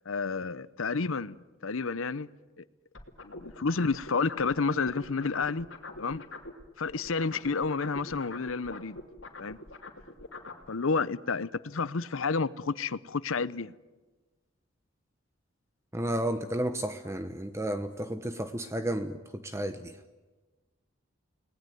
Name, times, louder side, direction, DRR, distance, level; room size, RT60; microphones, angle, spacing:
voice 1, 0.1-1.4 1.6-2.3 3.2-5.7 6.0-6.2 6.8-9.0 9.4-9.6 10.7-13.7, left 4 dB, 80° left, 0.8 m, -30 dB
sound 1, 2.9-6.6 6.9-10.6, left 2 dB, 60° left, 2.9 m, -43 dB
voice 2, 15.9-19.9, right 1 dB, 15° right, 0.8 m, -32 dB
30.0 x 19.0 x 9.3 m
head